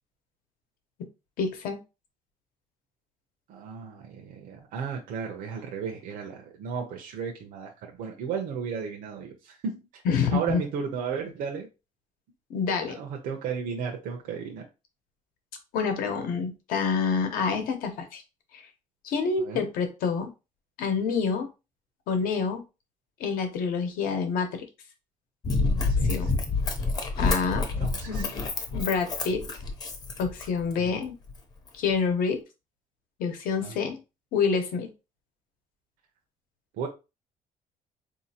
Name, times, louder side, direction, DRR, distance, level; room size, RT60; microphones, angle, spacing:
voice 1, 1.4-1.8 10.0-10.6 12.5-13.0 15.7-18.2 18.5-18.6 19.0-20.3 20.8-21.5 22.1-22.6 23.2-24.6 26.0-26.4 27.2-27.7 28.1-28.3 28.7-29.4 30.2-31.1 31.7-32.4 33.2-34.0 34.3-34.9, left 5 dB, 90° left, 0.9 m, -27 dB
voice 2, 3.5-10.0 10.3-11.7 12.9-14.6 19.4-19.6 25.9-26.3 27.8-28.3 30.8-31.0 33.6-33.8 36.8-36.9, right 6 dB, 85° right, 0.7 m, -34 dB
Run, 25.4-30.7 31.3-31.4, left 3 dB, 30° left, 0.6 m, -28 dB
4.0 x 2.7 x 2.8 m
cardioid pair, 175°, 14 cm